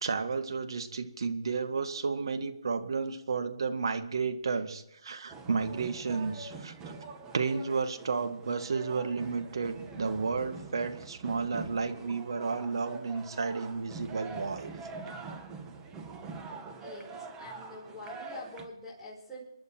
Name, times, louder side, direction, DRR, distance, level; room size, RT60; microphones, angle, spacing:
voice 1, 0.0-6.7 7.3-14.7, right 4 dB, 65° right, 8 dB, 2.0 m, -32 dB
sound 1, 5.3-18.7, right 4 dB, 15° right, 1.7 m, -44 dB
voice 2, 16.8-19.4, left 2 dB, 5° left, -8 dB, 4.7 m, -46 dB
28.0 x 11.0 x 4.6 m, 0.81 s
figure-of-eight pair, 145°, 3 cm